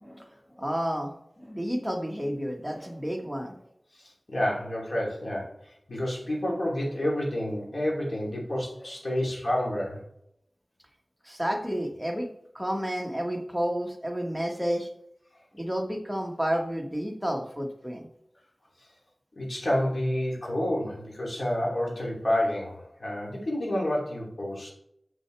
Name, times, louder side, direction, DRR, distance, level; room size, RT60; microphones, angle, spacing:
voice 1, 0.0-3.6 11.2-12.3 12.5-14.9 15.5-18.1, equal, ahead, 1 dB, 1.3 m, -31 dB
voice 2, 3.9-10.0 19.3-24.7, left 1 dB, 60° left, -3 dB, 2.7 m, -29 dB
7.0 x 6.3 x 3.3 m, 0.75 s
wide cardioid pair, 70°, 0 cm